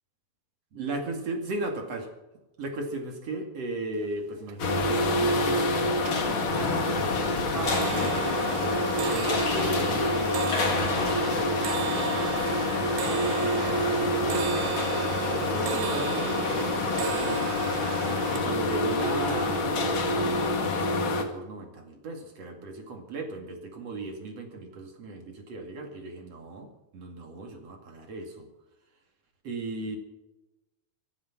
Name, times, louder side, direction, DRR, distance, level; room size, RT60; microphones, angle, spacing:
voice 1, 0.7-2.1 2.6-13.2 13.4-14.5 15.2-17.7 18.3-28.5 29.4-30.0, right 2 dB, 45° right, 3 dB, 2.6 m, -37 dB
sound 1, 4.0-4.1 4.4-5.0 5.4-5.7 6.0-18.4, right 15 dB, 85° right, 3.0 m, -36 dB
sound 2, 4.6-21.2, left 2 dB, 55° left, 1.4 m, -27 dB
25.5 x 8.6 x 6.0 m, 1.0 s
omnidirectional pair, 5.3 m